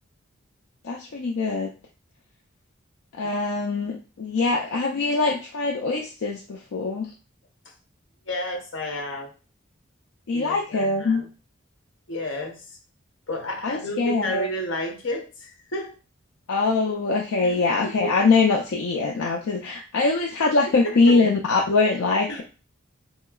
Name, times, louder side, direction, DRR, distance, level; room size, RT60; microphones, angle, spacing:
voice 1, 0.8-1.7 3.1-7.1 10.3-11.2 13.6-14.5 16.5-22.4, left 3 dB, 90° left, 0 dB, 0.4 m, -23 dB
voice 2, 8.3-9.3 10.3-11.3 12.1-12.7 13.3-15.9 17.4-17.5 17.8-18.1 20.8-21.2 22.3-22.4, left 1 dB, 70° left, 1 dB, 0.9 m, -31 dB
3.6 x 2.9 x 2.3 m, 0.34 s
head